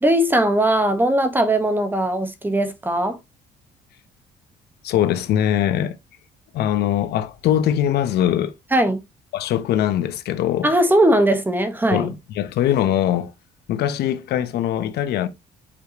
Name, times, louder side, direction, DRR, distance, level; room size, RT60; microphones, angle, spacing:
voice 1, 0.0-3.2 8.7-9.0 10.6-12.1, right 1 dB, 10° right, 1.5 m, -19 dB
voice 2, 4.8-6.0 6.5-8.5 9.3-10.7 11.9-13.3 13.7-15.3, left 11 dB, 75° left, 1.1 m, -21 dB
7.1 x 5.2 x 3.1 m
cardioid pair, 110°, 17 cm